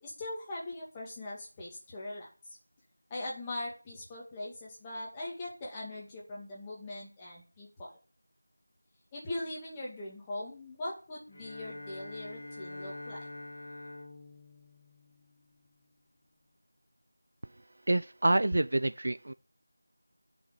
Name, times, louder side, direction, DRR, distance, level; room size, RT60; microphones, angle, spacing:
voice 1, 0.0-2.3 3.1-7.9 9.1-13.3, left 1 dB, 10° left, 2.3 m, -41 dB
Bowed string instrument, 11.3-15.7, left 2 dB, 35° left, 2.9 m, -46 dB
voice 2, 17.9-19.3, right 2 dB, 50° right, 0.5 m, -27 dB
10.0 x 6.0 x 7.6 m
figure-of-eight pair, 175°, 0 cm